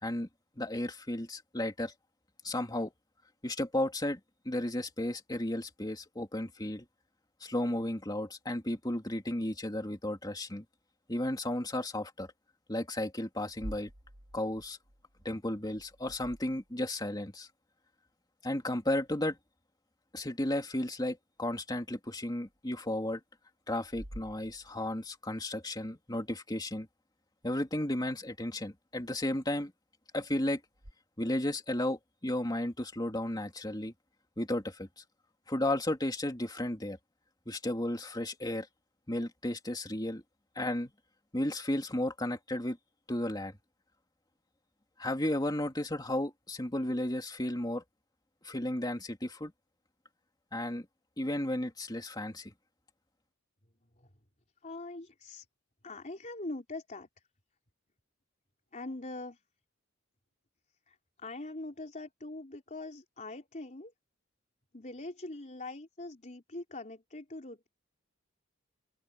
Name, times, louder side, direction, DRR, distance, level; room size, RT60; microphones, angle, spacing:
voice 1, 0.6-1.9 2.4-2.9 3.4-4.2 4.4-6.9 7.4-10.6 11.1-12.3 12.7-13.9 14.3-14.8 15.2-17.5 18.4-19.4 20.1-23.2 23.7-26.9 27.4-29.7 30.1-30.6 31.2-33.9 34.4-34.9 35.5-37.0 37.5-38.7 39.1-40.2 40.6-40.9 41.3-42.8 43.1-43.6 45.0-47.8 48.4-49.5 50.5-50.9 51.2-52.5, left 1 dB, 20° left, 2.7 m, -33 dB
sound 1, 13.5-17.0 21.5-21.6 22.5-22.6 23.8-25.1 30.7-30.9, equal, 70° right, 2.7 m, -49 dB
voice 2, 54.6-55.5 55.8-57.1 58.7-59.4 60.9-63.9 64.7-67.7, left 2 dB, 35° left, 3.9 m, -43 dB
head